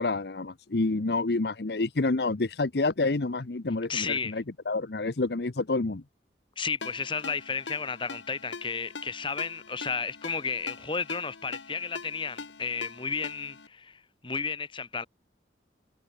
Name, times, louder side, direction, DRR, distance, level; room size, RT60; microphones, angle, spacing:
voice 1, 0.0-6.0, left 3 dB, 60° left, 0.8 m, -28 dB
voice 2, 3.9-4.4 6.6-15.1, left 5 dB, 30° left, 1.3 m, -33 dB
Ringtone, 6.8-13.7, left 4 dB, 85° left, 1.3 m, -43 dB
head